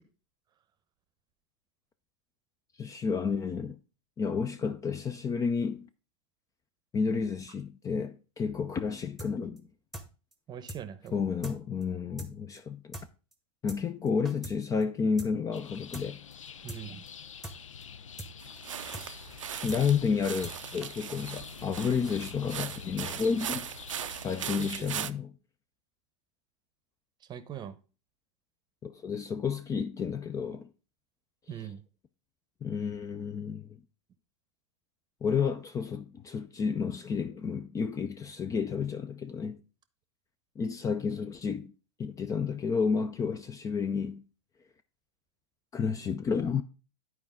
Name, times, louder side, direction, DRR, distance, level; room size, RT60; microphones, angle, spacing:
voice 1, 2.8-3.8 4.2-5.9 6.9-9.6 11.1-13.0 13.6-16.2 19.6-23.7 24.2-25.3 28.8-30.7 31.5-31.7 32.6-33.7 35.2-39.6 40.6-41.7 42.0-44.2 45.7-46.6, left 6 dB, 20° left, 0.5 m, -31 dB
sound 1, 9.2-9.3 9.6-9.7 9.9-10.1 10.3-10.4 10.7-10.8 11.1-11.2 11.4-11.6 11.8-11.9 12.2-12.3 12.6-12.7 12.9-13.1 13.3-13.4 13.7-13.8 14.1-14.6 14.8-14.9 15.2-15.3 15.6-15.7 15.9-16.1 16.3-16.4 16.7-16.8 17.1-17.2 17.4-17.6 17.8-17.9 18.2-18.3 18.6-18.7 18.9-19.1 19.3-19.4 19.7-19.8 20.1-20.6 20.8-20.9, right 1 dB, ahead, 1.2 m, -41 dB
voice 2, 10.5-11.2 16.6-17.0 24.6-24.9 27.3-27.8 31.5-31.8, right 9 dB, 25° right, 0.8 m, -41 dB
sound 2, 15.5-24.8, left 7 dB, 85° left, 0.4 m, -46 dB
sound 3, 18.4-25.1, right 10 dB, 80° right, 0.5 m, -39 dB
11.0 x 4.7 x 3.7 m
hypercardioid pair, 100°, 16 cm